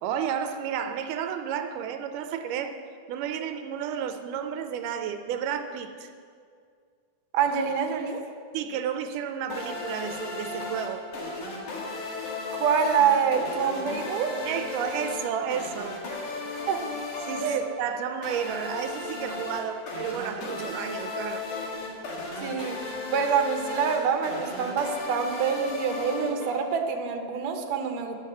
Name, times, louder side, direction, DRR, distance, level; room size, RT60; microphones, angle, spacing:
voice 1, 0.0-2.8 3.1-6.1 8.5-11.1 14.5-16.0 17.2-21.5, right 8 dB, 85° right, 2.2 m, -32 dB
voice 2, 7.3-8.3 12.5-14.4 16.5-16.9 17.4-17.6 22.4-22.8 23.1-28.1, right 6 dB, 65° right, 2.0 m, -26 dB
sound 1, 9.5-26.9, left 3 dB, 70° left, 3.2 m, -35 dB
12.0 x 6.5 x 7.5 m
omnidirectional pair, 3.6 m